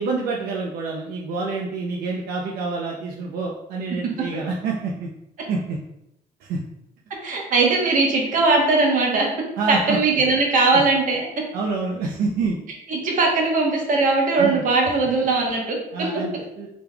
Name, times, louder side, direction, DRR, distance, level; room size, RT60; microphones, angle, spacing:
voice 1, 0.0-5.1 5.5-5.8 6.4-6.6 9.6-10.0 10.7-10.8 11.5-12.6 14.4-14.7 15.9-16.7, right 4 dB, 85° right, -1 dB, 0.5 m, -27 dB
voice 2, 7.2-9.3 9.7-11.3 12.9-15.8, right 3 dB, 60° right, 0 dB, 1.2 m, -19 dB
5.0 x 3.4 x 2.3 m, 0.83 s
cardioid pair, 120°, 15 cm